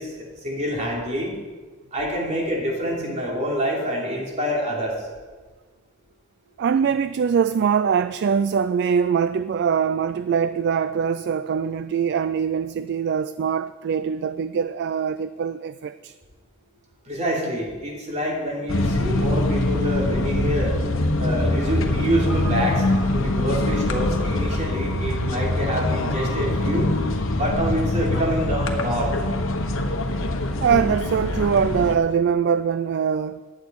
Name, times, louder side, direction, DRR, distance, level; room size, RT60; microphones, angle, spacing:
voice 1, 0.0-1.3 1.9-5.1 17.0-20.8 21.2-22.8 23.1-26.9 27.4-29.2, equal, 35° right, 3.3 m, -26 dB
voice 2, 6.6-16.1 30.6-33.5, right 7 dB, 55° right, 0.3 m, -23 dB
sound 1, 18.7-31.9, left 1 dB, 65° left, 1.2 m, -24 dB
15.0 x 10.5 x 4.7 m
head